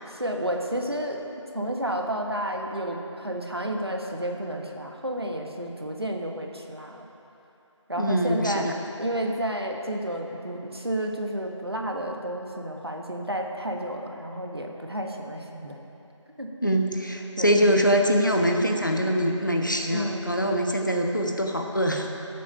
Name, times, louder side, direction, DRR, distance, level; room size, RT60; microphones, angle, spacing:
voice 1, 0.1-1.2 1.5-7.0 7.9-8.7 9.0-15.8 16.4-16.5 17.4-17.6 19.9-20.7, right 1 dB, 50° right, 2 dB, 1.3 m, -31 dB
voice 2, 8.0-8.7 16.6-22.1, equal, 40° left, 2 dB, 1.1 m, -23 dB
16.5 x 8.4 x 5.6 m, 3.0 s
figure-of-eight pair, 180°, 16 cm